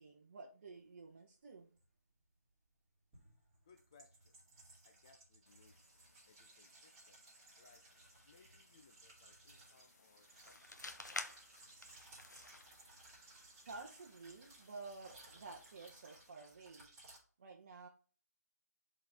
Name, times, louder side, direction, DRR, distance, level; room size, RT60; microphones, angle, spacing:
voice 1, 0.0-1.7 13.7-16.9 17.4-17.9, right 3 dB, 35° right, 0 dB, 1.0 m, -52 dB
sound 1, 1.8-1.9 3.1-17.2, right 2 dB, 15° right, 2.3 m, -61 dB
voice 2, 3.7-4.4 4.8-5.8 6.3-7.2 7.6-7.8 8.2-10.8, left 4 dB, 15° left, 5 dB, 0.3 m, -67 dB
sound 2, 5.5-16.3, left 2 dB, 50° left, 1.6 m, -72 dB
sound 3, 9.5-15.9, left 2 dB, 85° left, 1.0 m, -52 dB
7.6 x 4.3 x 3.5 m, 0.40 s
figure-of-eight pair, 165°, 9 cm